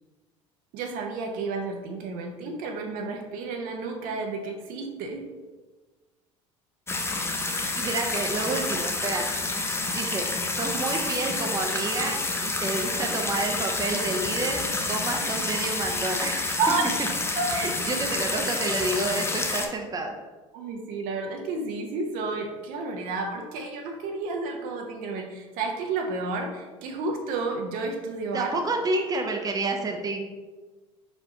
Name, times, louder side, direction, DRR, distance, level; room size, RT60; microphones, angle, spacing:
voice 1, 0.7-5.2 16.6-16.9 17.4-17.7 20.5-28.5, right 3 dB, 55° right, 3 dB, 0.8 m, -31 dB
sound 1, 6.9-19.7, left 3 dB, 15° left, 0.6 m, -29 dB
voice 2, 7.7-9.3 9.9-16.4 17.5-20.1 28.3-30.2, right 3 dB, 20° right, 3 dB, 0.7 m, -29 dB
4.3 x 4.3 x 2.8 m, 1.3 s
hypercardioid pair, 70°, 17 cm